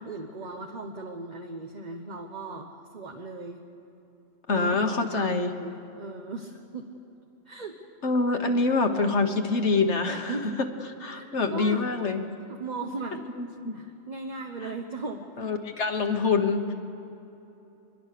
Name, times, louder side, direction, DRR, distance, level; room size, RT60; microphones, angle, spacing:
voice 1, 0.0-3.6 4.5-6.9 7.5-7.8 10.1-10.6 11.1-11.9 12.5-13.2 13.7-15.3, right 3 dB, 35° right, 3 dB, 1.1 m, -37 dB
voice 2, 4.5-5.5 8.0-10.5 11.0-12.2 13.4-13.8 15.4-16.7, left 3 dB, 60° left, 5 dB, 1.6 m, -25 dB
23.5 x 22.0 x 6.7 m, 2.9 s
omnidirectional pair, 1.4 m